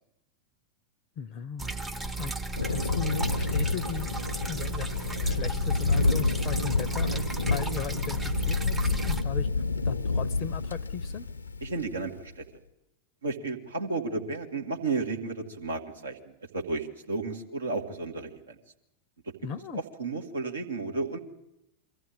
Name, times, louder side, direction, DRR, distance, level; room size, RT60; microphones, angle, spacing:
voice 1, 1.2-1.7 2.2-2.3 2.7-4.2 4.5-9.5 9.8-11.3 19.4-19.8, left 7 dB, 35° left, 12 dB, 0.7 m, -38 dB
sound 1, 1.6-9.2, right 2 dB, 10° right, 0.8 m, -35 dB
Thunder, 2.6-12.2, left 4 dB, 75° left, 0.8 m, -29 dB
voice 2, 11.6-12.4 13.2-18.6 19.2-19.3 19.7-21.2, right 3 dB, 75° right, 2 dB, 2.0 m, -33 dB
23.5 x 14.5 x 8.6 m, 0.87 s
figure-of-eight pair, 90°, 0 cm